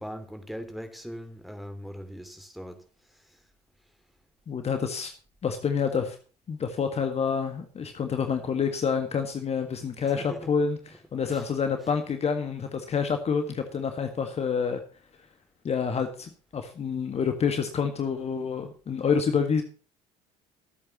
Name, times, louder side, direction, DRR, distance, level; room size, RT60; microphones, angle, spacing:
voice 1, 0.0-3.4 10.1-10.5 11.2-11.4 13.7-13.9, equal, ahead, 2.6 m, -41 dB
voice 2, 4.5-5.1 5.4-6.2 6.5-10.8 11.1-14.8 15.6-19.6, left 6 dB, 30° left, 1.7 m, -28 dB
22.5 x 8.6 x 3.0 m
figure-of-eight pair, 60°, 20 cm